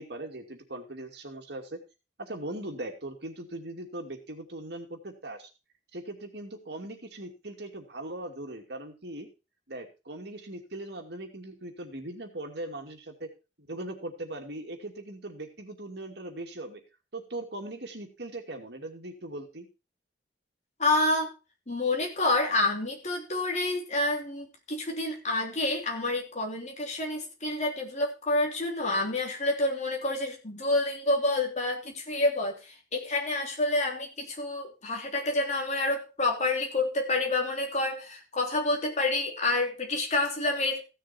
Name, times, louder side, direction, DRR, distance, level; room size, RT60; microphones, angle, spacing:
voice 1, 0.0-1.8 2.2-5.5 5.9-9.3 9.7-13.3 13.6-16.8 17.1-19.7, right 1 dB, 65° right, 2 dB, 2.6 m, -40 dB
voice 2, 20.8-21.3 21.7-40.8, left 2 dB, 40° left, 2 dB, 3.3 m, -28 dB
15.5 x 6.7 x 4.5 m, 0.29 s
head